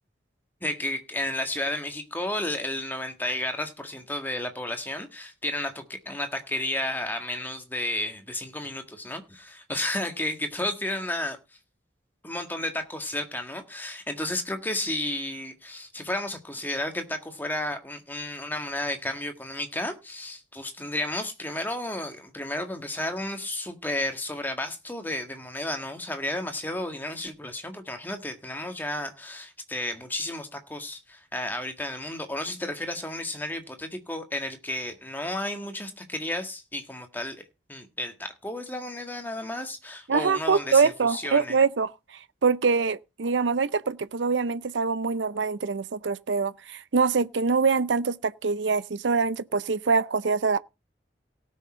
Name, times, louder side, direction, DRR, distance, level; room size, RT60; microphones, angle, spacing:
voice 1, 0.6-11.4 12.2-37.4 37.7-41.6, left 1 dB, 10° left, 1.8 m, -32 dB
voice 2, 40.1-41.9 42.4-50.6, right 5 dB, 90° right, 0.6 m, -24 dB
18.0 x 6.4 x 4.3 m
head